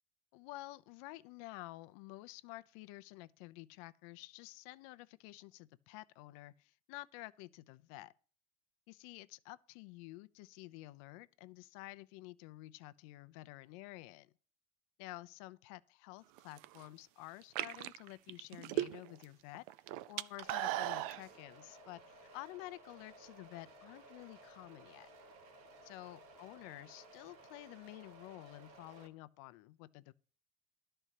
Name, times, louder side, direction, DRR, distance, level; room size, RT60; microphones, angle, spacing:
voice 1, 0.3-8.1 8.9-14.3 15.0-19.6 20.1-25.1 25.9-30.1, left 18 dB, 65° left, 0.7 m, -51 dB
sound 1, 16.4-16.8 17.4-19.2 19.5-21.2, right 14 dB, 70° right, 0.5 m, -37 dB
sound 2, 20.4-29.1, right 2 dB, 90° right, 2.5 m, -58 dB
12.5 x 4.5 x 8.2 m
cardioid pair, 165°, 19 cm